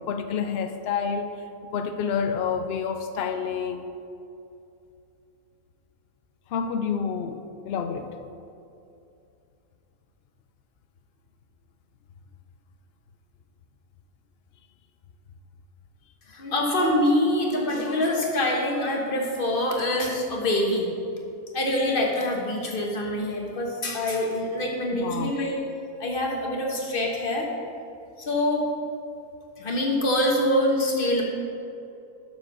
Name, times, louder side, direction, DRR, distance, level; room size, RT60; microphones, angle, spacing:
voice 1, 0.0-1.3 1.7-3.9 6.5-8.1 24.9-25.3, left 6 dB, 80° left, 7 dB, 0.5 m, -28 dB
voice 2, 16.3-20.9 21.5-25.6 26.0-27.5 28.2-28.7 29.6-31.2, left 1 dB, 40° left, 0 dB, 1.4 m, -25 dB
7.2 x 7.0 x 6.1 m, 2.6 s
omnidirectional pair, 1.6 m